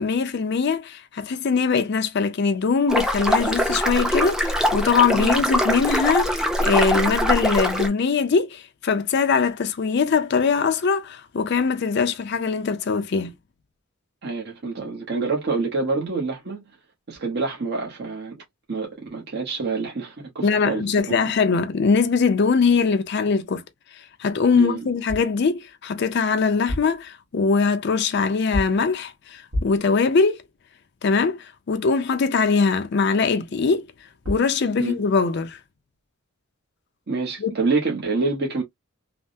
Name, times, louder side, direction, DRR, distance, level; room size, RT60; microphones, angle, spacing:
voice 1, 0.0-13.3 20.4-23.6 23.9-30.4 31.0-33.9 34.3-35.6 37.4-37.5, left 5 dB, 55° left, 0.4 m, -22 dB
sound 1, 2.9-7.9, equal, 5° right, 0.5 m, -22 dB
voice 2, 14.2-16.6 17.1-18.4 18.7-21.3 24.5-24.8 34.8-35.0 37.1-38.6, right 3 dB, 50° right, 0.9 m, -27 dB
sound 2, 25.1-25.4 26.5-27.1 28.5-28.9 29.5-29.9 33.9-34.0 34.2-34.6, left 1 dB, 75° right, 1.6 m, -30 dB
3.3 x 2.0 x 2.6 m
head